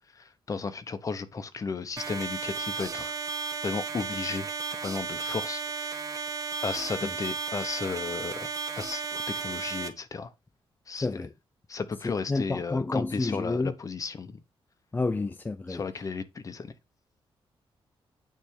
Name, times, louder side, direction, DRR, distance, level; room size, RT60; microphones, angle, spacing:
voice 1, 0.1-4.5 4.8-6.1 6.6-8.5 8.8-10.3 10.9-11.3 11.7-14.4 15.7-16.7, left 5 dB, 35° left, 1.0 m, -34 dB
sound 1, 2.0-9.9, right 5 dB, 35° right, 1.3 m, -34 dB
voice 2, 12.0-13.7 14.9-15.8, left 3 dB, 20° left, 0.4 m, -29 dB
8.9 x 3.4 x 6.5 m
wide cardioid pair, 135°, 10 cm